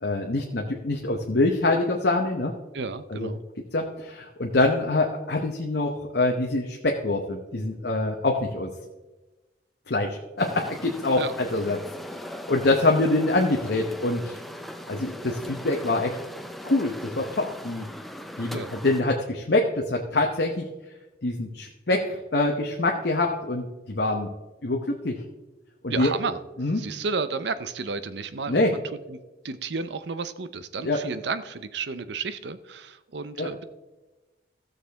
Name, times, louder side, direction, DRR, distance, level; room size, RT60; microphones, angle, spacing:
voice 1, 0.0-2.6 3.1-3.3 3.7-8.7 9.9-11.8 12.1-14.4 14.9-16.2 16.6-17.9 18.4-20.7 21.2-24.3 24.6-25.2 25.8-26.1 26.6-26.8 28.5-28.7 30.8-31.0 33.4-33.6, left 2 dB, 55° left, 1 dB, 0.9 m, -25 dB
voice 2, 2.7-3.4 11.2-11.3 18.5-18.7 25.9-26.4 26.7-28.8 29.1-33.6, right 4 dB, 65° right, 13 dB, 0.6 m, -32 dB
sound 1, 10.4-19.0, left 1 dB, ahead, 0.5 m, -39 dB
15.5 x 6.6 x 3.4 m, 1.1 s
head